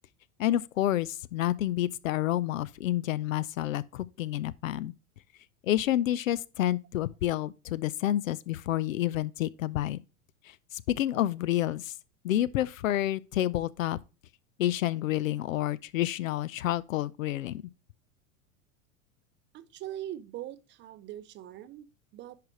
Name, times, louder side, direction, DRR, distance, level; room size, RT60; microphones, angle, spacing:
voice 1, 0.4-4.9 5.6-10.0 10.7-11.9 12.2-14.0 14.6-17.6, left 13 dB, 70° left, 0.6 m, -29 dB
voice 2, 19.5-22.4, right 12 dB, 25° right, 0.5 m, -42 dB
10.5 x 5.0 x 3.1 m
figure-of-eight pair, 85°, 42 cm